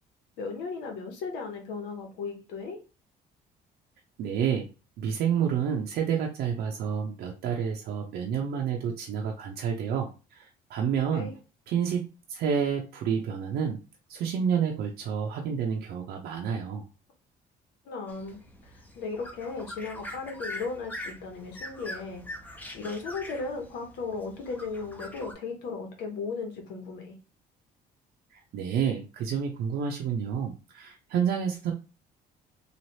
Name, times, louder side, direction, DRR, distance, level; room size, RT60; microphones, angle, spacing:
voice 1, 0.4-2.8 11.1-11.3 17.8-18.4 19.0-22.2 22.7-27.2, left 4 dB, 85° left, 3 dB, 1.1 m, -36 dB
voice 2, 4.2-4.7 5.0-11.3 11.7-13.8 14.1-16.8 28.3-31.7, right 7 dB, 70° right, 0 dB, 0.6 m, -29 dB
sound 1, 18.1-25.3, left 1 dB, 10° left, 0.6 m, -43 dB
3.2 x 2.4 x 2.7 m, 0.31 s
cardioid pair, 110°, 17 cm